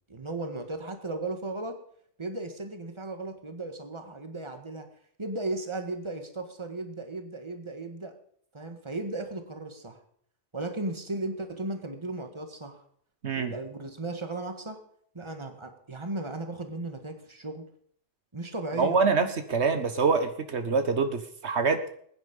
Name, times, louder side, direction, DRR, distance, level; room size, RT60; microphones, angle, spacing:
voice 1, 0.1-1.8 2.2-4.9 5.2-8.2 8.5-10.0 10.5-12.8 13.3-14.8 15.1-17.7 18.3-19.0, right 2 dB, 25° right, 6 dB, 1.8 m, -36 dB
voice 2, 18.8-21.8, right 4 dB, 75° right, 9 dB, 1.5 m, -25 dB
21.0 x 9.9 x 5.4 m, 0.63 s
omnidirectional pair, 1.1 m